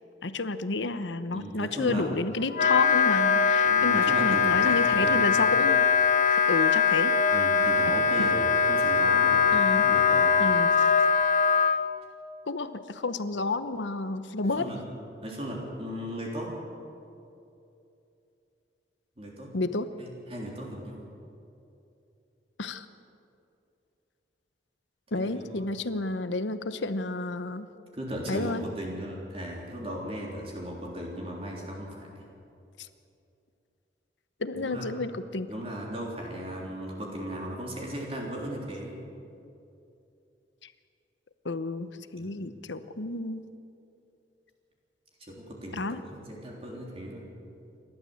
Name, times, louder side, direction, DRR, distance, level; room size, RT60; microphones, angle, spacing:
voice 1, 0.2-5.9 6.2-7.1 8.2-8.3 9.5-9.9 10.4-10.7 12.5-14.7 19.5-19.9 22.6-22.8 25.1-27.7 28.3-28.7 34.4-35.5 41.4-43.4 45.7-46.0, left 3 dB, 90° left, 11 dB, 1.0 m, -31 dB
voice 2, 1.3-2.1 3.6-5.4 7.3-10.3 14.5-14.9 15.2-16.5 19.2-19.5 20.0-21.1 25.1-25.7 27.9-32.3 34.5-34.9 35.5-39.0 42.2-42.5 45.3-47.3, equal, 35° right, -2 dB, 3.6 m, -37 dB
Wind instrument woodwind instrument, 2.5-11.8, left 6 dB, 45° left, 0.9 m, -22 dB
28.5 x 12.5 x 7.9 m, 2.7 s
head